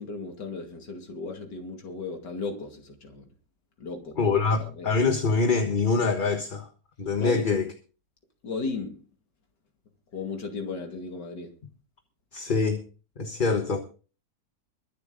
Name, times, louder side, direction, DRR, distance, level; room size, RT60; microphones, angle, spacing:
voice 1, 0.0-3.3 3.8-5.0 7.2-7.4 8.4-9.1 10.1-11.5, left 3 dB, 85° left, 3.0 m, -35 dB
voice 2, 4.2-6.7 7.0-7.7 12.3-12.8 13.2-13.8, left 4 dB, 30° left, 1.4 m, -24 dB
23.0 x 8.0 x 3.9 m
omnidirectional pair, 1.8 m